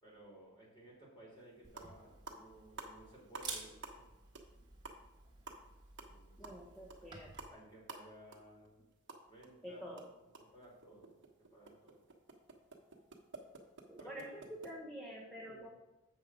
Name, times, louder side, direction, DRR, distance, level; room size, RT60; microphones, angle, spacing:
voice 1, 0.0-4.0 6.0-6.4 7.5-8.9 9.3-9.9 10.5-11.1 11.5-12.0 14.0-14.5 15.4-15.7, right 1 dB, 20° left, -4 dB, 3.3 m, -57 dB
sound 1, 1.3-1.4 1.7-2.0 2.2-3.5 3.8-4.1 4.3-4.5 4.8-9.5 9.8-14.7, right 3 dB, 55° right, 1.2 m, -52 dB
Camera, 1.6-7.5, right 4 dB, 20° right, 1.6 m, -52 dB
voice 2, 6.4-7.6 9.6-10.1 13.9-15.7, equal, 5° left, -3 dB, 1.0 m, -48 dB
7.7 x 6.2 x 5.0 m, 1.0 s
head